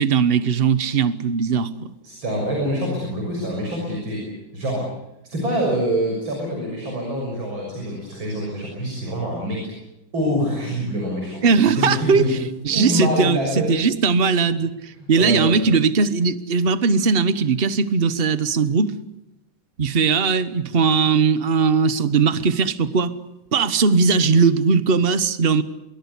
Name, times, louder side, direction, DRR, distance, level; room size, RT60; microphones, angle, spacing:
voice 1, 0.0-1.9 11.4-12.2 12.6-13.4 13.7-18.9 19.8-23.1 23.5-25.6, right 5 dB, 35° right, 1.1 m, -19 dB
voice 2, 2.0-4.3 4.5-4.9 5.2-9.7 10.1-12.4 12.7-13.7 15.0-15.6, equal, 80° right, 7.3 m, -25 dB
26.0 x 22.5 x 8.3 m
omnidirectional pair, 2.1 m